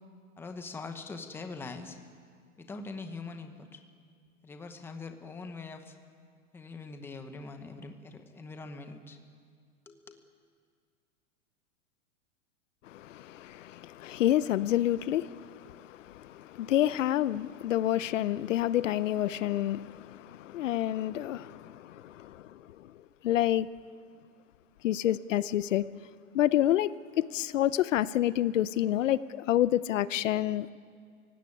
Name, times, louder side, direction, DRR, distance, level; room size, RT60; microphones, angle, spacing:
voice 1, 0.4-2.0 2.6-3.8 4.4-5.9 6.5-9.2 9.9-10.2, left 3 dB, 5° left, 6 dB, 1.0 m, -43 dB
voice 2, 12.9-22.9 23.2-23.7 24.8-25.9 26.3-30.7, left 12 dB, 75° left, 17 dB, 0.8 m, -28 dB
25.5 x 16.5 x 9.7 m, 2.1 s
supercardioid pair, 160°, 38 cm